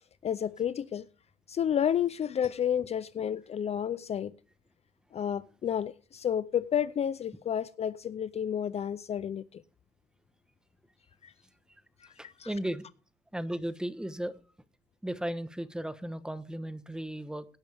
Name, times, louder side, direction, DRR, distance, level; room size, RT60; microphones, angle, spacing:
voice 1, 0.2-1.0 1.5-4.3 5.1-9.6 11.2-11.3 12.0-12.5, left 9 dB, 40° left, 0.5 m, -31 dB
voice 2, 12.2-12.9 13.3-14.4 15.0-17.5, right 1 dB, 5° right, 1.1 m, -35 dB
17.5 x 10.5 x 3.5 m
cardioid pair, 110°, 17 cm